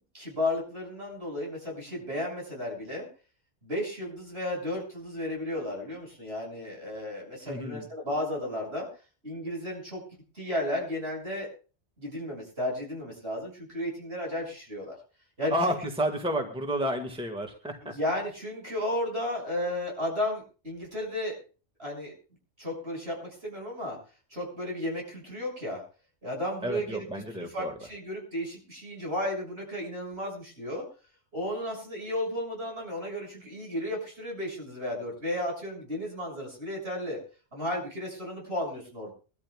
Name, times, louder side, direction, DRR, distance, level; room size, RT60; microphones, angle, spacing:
voice 1, 0.1-3.1 3.6-8.9 9.2-10.0 10.3-11.5 12.0-15.0 15.4-15.8 17.8-21.4 21.8-22.1 22.6-24.0 24.3-25.8 26.2-30.9 31.3-37.2 37.5-39.1, left 1 dB, 65° right, -1 dB, 7.0 m, -33 dB
voice 2, 7.5-7.8 15.5-17.9 26.6-27.7, equal, 5° right, 3 dB, 1.7 m, -31 dB
23.5 x 13.0 x 2.4 m, 0.37 s
omnidirectional pair, 1.2 m